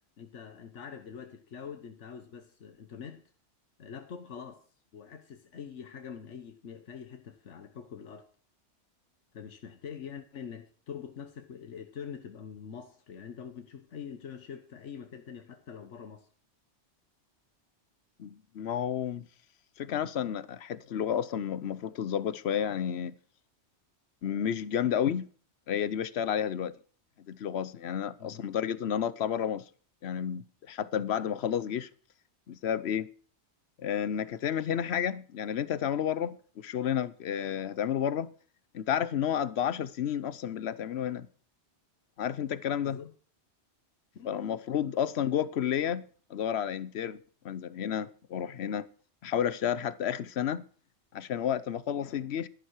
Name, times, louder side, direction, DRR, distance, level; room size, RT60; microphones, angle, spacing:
voice 1, 0.2-3.2 3.8-4.6 4.9-8.3 9.3-16.3 28.2-28.4 42.8-43.1 44.1-44.6, left 7 dB, 90° left, 1.4 m, -44 dB
voice 2, 18.2-19.3 19.8-23.1 24.2-25.3 25.7-26.7 27.3-29.6 30.0-31.9 32.5-33.1 33.8-38.3 38.7-41.3 42.2-43.0 44.2-46.0 46.3-48.9 49.2-50.6 51.1-52.5, left 9 dB, 65° left, 1.0 m, -31 dB
12.0 x 11.0 x 4.6 m
omnidirectional pair, 1.2 m